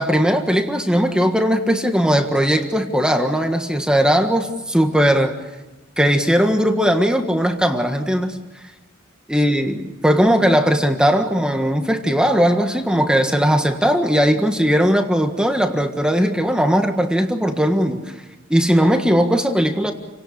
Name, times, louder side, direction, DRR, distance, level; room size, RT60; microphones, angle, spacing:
voice 1, 0.0-5.4 6.0-8.4 9.3-18.0 18.5-19.9, equal, 5° right, 5 dB, 1.6 m, -18 dB
29.0 x 18.0 x 8.5 m, 1.1 s
head